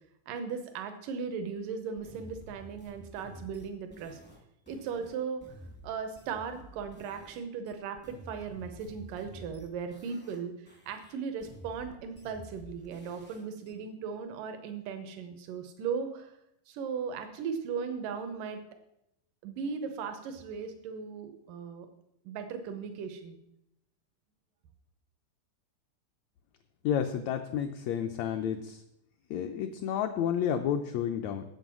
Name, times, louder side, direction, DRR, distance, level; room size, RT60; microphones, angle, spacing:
voice 1, 0.3-4.2 4.7-5.4 5.8-10.5 10.9-16.3 16.7-18.6 19.4-21.9 22.3-23.4, right 6 dB, 90° right, 7 dB, 2.5 m, -37 dB
sound 1, 2.0-7.4 7.7-10.4 10.7-13.7, equal, 10° left, 0.4 m, -51 dB
voice 2, 26.8-28.8 29.3-31.4, left 8 dB, 80° left, 5 dB, 1.6 m, -31 dB
7.9 x 7.6 x 6.0 m, 0.80 s
omnidirectional pair, 3.7 m